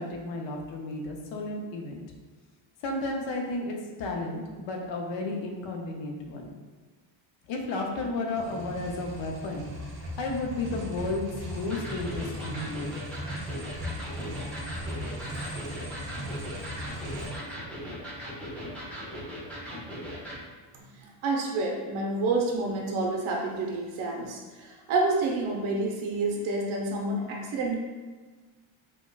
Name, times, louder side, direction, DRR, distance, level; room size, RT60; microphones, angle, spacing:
voice 1, 0.0-2.0 2.8-6.6 7.5-13.0, left 2 dB, 70° left, 1 dB, 0.7 m, -33 dB
sound 1, 8.3-17.3, equal, 40° right, 1.0 m, -38 dB
Electric guitar, 11.7-20.4, equal, 5° left, 0.4 m, -39 dB
voice 2, 21.0-27.8, right 2 dB, 75° right, -1 dB, 0.9 m, -29 dB
5.0 x 2.2 x 2.3 m, 1.4 s
cardioid pair, 170°, 48 cm